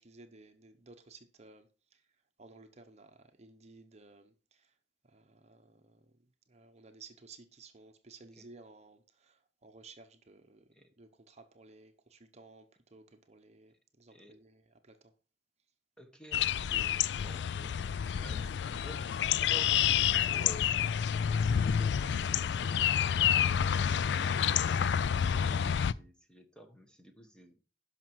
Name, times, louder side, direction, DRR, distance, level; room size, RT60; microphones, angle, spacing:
voice 1, 0.0-2.0 2.4-4.7 5.1-6.1 6.5-10.7 11.0-15.1, right 3 dB, 40° right, 0.9 m, -56 dB
voice 2, 16.0-23.1 23.9-27.6, equal, 5° left, 1.3 m, -52 dB
sound 1, 16.3-25.9, left 8 dB, 65° left, 0.4 m, -29 dB
11.5 x 5.9 x 4.7 m
head